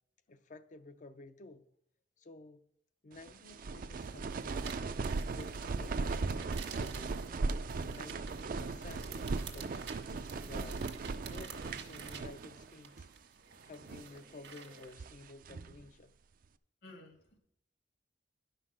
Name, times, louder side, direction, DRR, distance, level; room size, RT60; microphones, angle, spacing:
voice 1, 0.3-1.7 2.2-2.6 3.0-4.9 5.3-6.0 6.3-7.2 7.8-10.8 11.3-13.1 13.6-16.1, left 2 dB, 45° left, 0.6 m, -52 dB
sound 1, 3.2-12.7 13.0-13.1 13.7-14.2 14.7-15.8, right 3 dB, 50° right, 0.4 m, -38 dB
sound 2, 4.0-14.9, right 6 dB, 80° right, 1.5 m, -51 dB
voice 2, 16.8-17.4, left 2 dB, 70° left, 2.5 m, -54 dB
11.0 x 5.7 x 6.1 m
head